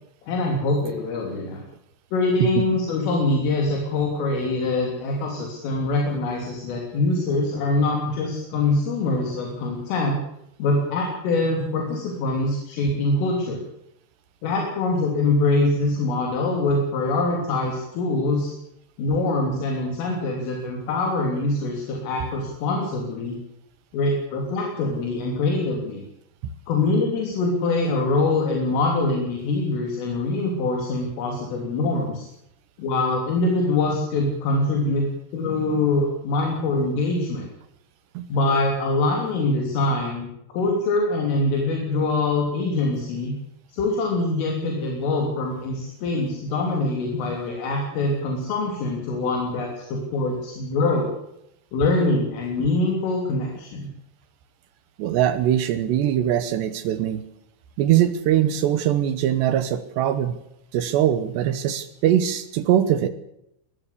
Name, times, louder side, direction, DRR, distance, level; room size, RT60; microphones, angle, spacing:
voice 1, 0.3-1.6 2.1-10.2 10.6-13.6 14.4-18.5 19.0-23.4 23.9-26.0 26.7-32.3 32.8-35.1 35.3-37.5 38.3-43.3 43.7-51.1 51.7-53.9, left 2 dB, 75° left, 1 dB, 5.8 m, -24 dB
voice 2, 55.0-57.2 57.8-60.4 60.7-63.1, right 11 dB, 70° right, 13 dB, 2.8 m, -22 dB
22.0 x 14.5 x 8.4 m, 0.80 s
omnidirectional pair, 5.9 m